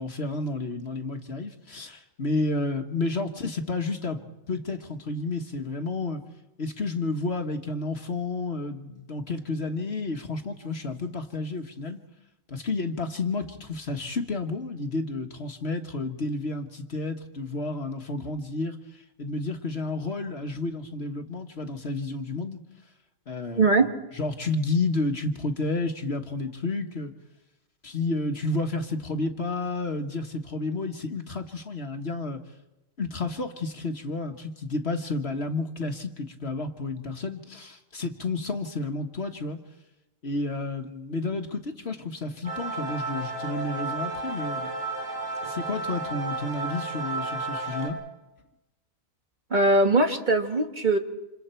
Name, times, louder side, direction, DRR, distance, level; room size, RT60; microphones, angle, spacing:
voice 1, 0.0-4.2 4.5-6.2 6.6-12.0 12.5-22.6 23.3-23.8 24.1-27.1 27.8-32.4 33.0-39.6 40.2-44.7 45.4-48.0, left 3 dB, 50° left, 5 dB, 1.5 m, -31 dB
voice 2, 23.6-24.0 49.5-51.0, right 2 dB, 35° right, 4 dB, 1.7 m, -21 dB
sound 1, 42.4-47.9, right 3 dB, 90° right, 6.3 m, -32 dB
28.5 x 27.5 x 4.4 m, 0.98 s
omnidirectional pair, 1.4 m